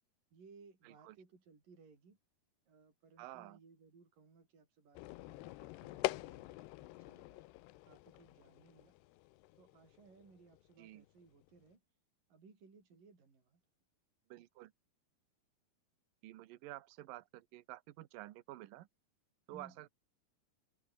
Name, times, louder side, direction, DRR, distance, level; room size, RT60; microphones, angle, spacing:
voice 1, 0.3-2.2 2.7-7.4 7.8-8.9 9.6-11.8 12.3-13.6 19.5-19.8, right 4 dB, 55° right, 7.6 m, -62 dB
voice 2, 0.8-1.2 3.2-3.6 10.8-11.0 14.3-14.7 16.2-18.9 19.5-19.9, right 16 dB, 70° right, 2.4 m, -51 dB
sound 1, 5.0-11.6, left 19 dB, 85° left, 2.8 m, -45 dB
omnidirectional pair, 4.8 m